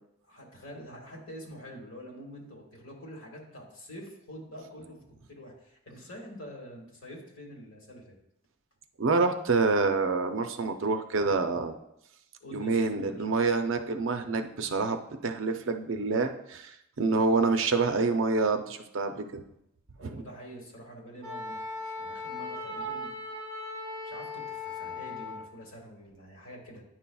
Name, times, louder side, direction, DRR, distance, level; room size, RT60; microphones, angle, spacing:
voice 1, 0.3-5.0 5.3-8.2 12.4-13.3 20.0-23.1 24.0-26.8, equal, 65° left, -1 dB, 1.8 m, -46 dB
voice 2, 9.0-11.8 12.5-19.4 20.0-20.2, right 4 dB, 65° right, 7 dB, 0.5 m, -27 dB
Wind instrument woodwind instrument, 21.2-25.5, left 2 dB, 40° right, 2.1 m, -38 dB
10.0 x 5.6 x 2.3 m, 0.81 s
head